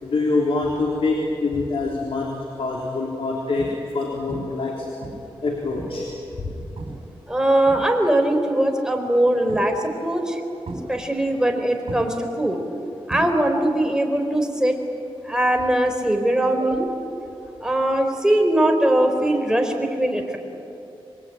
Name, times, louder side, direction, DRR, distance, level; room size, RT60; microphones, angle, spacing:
voice 1, 0.0-5.0 5.4-6.1 6.4-6.5, left 3 dB, 70° left, -1 dB, 3.7 m, -25 dB
sound 1, 2.0-2.3 2.9-3.0 3.6-4.0 4.3-4.7 5.0-6.2 6.8-7.1 7.4-8.3 9.5-10.0 10.7-11.5 11.9-13.8 14.0-14.4 16.5-16.6, right 2 dB, 70° right, 7.6 m, -37 dB
voice 2, 7.3-10.4 10.9-12.6 13.1-14.8 15.2-16.9 17.6-20.4, right 1 dB, 5° right, 3 dB, 4.0 m, -21 dB
27.5 x 22.5 x 9.1 m, 3.0 s
wide cardioid pair, 90°, 10 cm